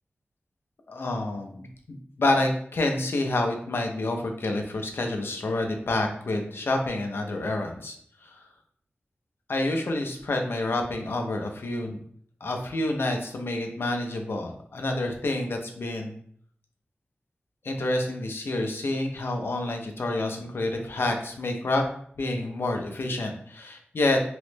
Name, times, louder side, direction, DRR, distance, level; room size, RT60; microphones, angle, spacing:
voice 1, 0.9-1.7 2.2-8.0 8.2-8.3 9.5-12.0 12.4-16.1 17.6-21.8 22.2-24.2, left 2 dB, 70° left, 3 dB, 0.5 m, -28 dB
3.0 x 2.0 x 3.1 m, 0.62 s
cardioid pair, 45°, 4 cm